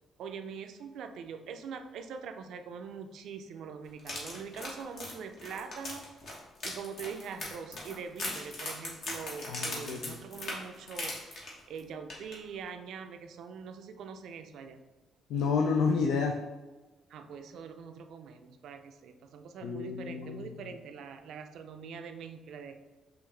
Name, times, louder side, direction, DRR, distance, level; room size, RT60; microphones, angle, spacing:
voice 1, 0.2-6.1 6.6-14.8 17.1-22.8, right 6 dB, 75° right, 7 dB, 0.4 m, -43 dB
sound 1, 4.0-11.8 12.1-12.3 12.7-12.8, left 2 dB, 65° left, 1.4 m, -39 dB
voice 2, 9.5-10.1 15.3-16.4 19.6-20.6, left 5 dB, 85° left, 2 dB, 0.4 m, -30 dB
5.6 x 2.5 x 3.2 m, 1.2 s
cardioid pair, 90°, 0 cm